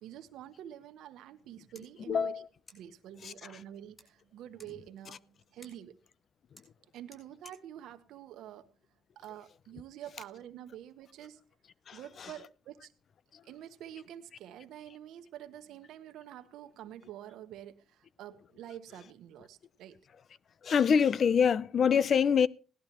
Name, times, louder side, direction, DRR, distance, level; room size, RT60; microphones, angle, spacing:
voice 1, 0.0-2.3 2.7-5.9 6.9-8.7 9.2-11.4 11.9-12.9 13.4-20.0, right 11 dB, 85° right, 1.1 m, -47 dB
sound 1, 1.7-9.3, left 1 dB, 20° left, 6.8 m, -63 dB
voice 2, 2.1-2.5 3.2-3.6 11.9-12.3 13.3-13.4 20.6-22.5, left 7 dB, 55° left, 0.5 m, -26 dB
18.0 x 12.0 x 3.0 m
cardioid pair, 90°, 0 cm